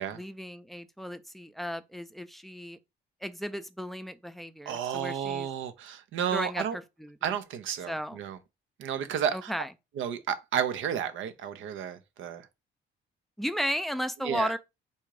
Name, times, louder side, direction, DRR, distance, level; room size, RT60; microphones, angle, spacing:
voice 1, 0.1-2.8 3.2-5.5 6.3-7.2 7.9-8.2 9.3-9.7 13.4-14.6, equal, ahead, 0.5 m, -34 dB
voice 2, 4.7-6.8 7.2-8.4 8.8-9.5 10.0-12.5 14.2-14.5, right 9 dB, 80° right, 0.7 m, -32 dB
4.2 x 2.5 x 4.7 m
cardioid pair, 90°, 20 cm